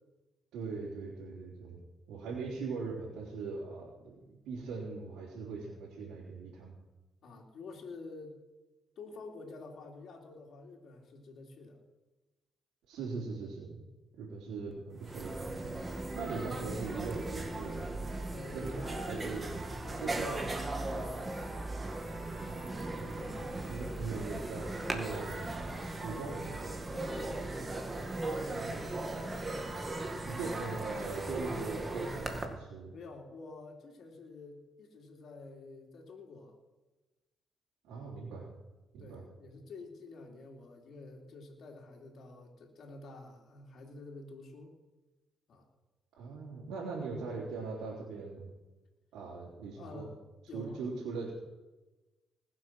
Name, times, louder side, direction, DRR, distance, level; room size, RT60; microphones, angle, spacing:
voice 1, 0.5-1.8 2.1-6.7 12.9-13.8 14.1-15.8 16.1-17.8 18.5-18.7 19.1-19.6 20.0-20.5 22.4-25.5 26.0-26.6 28.5-29.7 30.2-33.0 37.8-38.5 38.9-39.2 46.2-48.5 49.1-50.1 50.5-51.3, right 4 dB, 90° right, -6 dB, 3.7 m, -40 dB
voice 2, 7.2-8.4 9.0-11.8 18.3-19.1 19.8-20.3 20.9-21.4 26.1-26.4 26.9-27.5 30.2-30.4 32.9-36.5 39.0-44.7 45.5-45.7 49.8-50.1 50.5-50.8, left 3 dB, 60° left, 0 dB, 3.2 m, -49 dB
sound 1, 14.7-14.8 15.0-32.4, right 2 dB, 25° right, 2.2 m, -38 dB
20.0 x 7.6 x 6.2 m, 1.1 s
cardioid pair, 90°, 0 cm